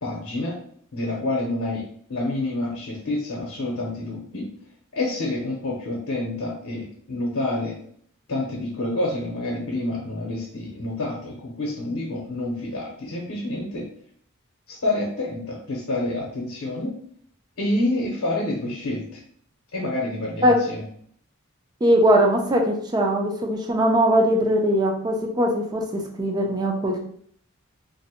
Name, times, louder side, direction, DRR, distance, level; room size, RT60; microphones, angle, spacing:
voice 1, 0.0-0.6 0.9-1.8 2.1-4.5 4.9-7.7 8.3-13.8 14.7-16.9 17.6-19.2 19.7-20.8, left 2 dB, 80° left, -3 dB, 0.7 m, -28 dB
voice 2, 21.8-27.1, equal, 20° right, 1 dB, 0.4 m, -20 dB
2.5 x 2.0 x 2.8 m, 0.62 s
head